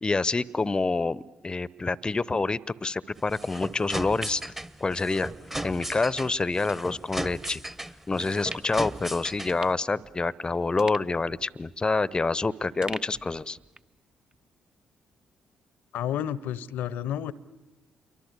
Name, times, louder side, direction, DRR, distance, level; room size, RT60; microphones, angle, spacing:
voice 1, 0.0-4.5 4.8-5.3 5.6-7.6 8.1-13.6, left 3 dB, 25° left, 21 dB, 0.8 m, -27 dB
sound 1, 3.2-9.7, right 1 dB, 10° right, 1.2 m, -37 dB
sound 2, 3.8-5.4 5.8-5.9 6.7-6.8 7.4-7.6 8.2-8.8 9.1-9.2 9.5-10.4 10.8-12.4 12.8-14.0 14.3-14.4, right 2 dB, 25° right, 0.9 m, -44 dB
voice 2, 15.9-17.3, left 10 dB, 70° left, 19 dB, 0.9 m, -30 dB
28.0 x 23.5 x 8.3 m, 1.1 s
hypercardioid pair, 40°, 3 cm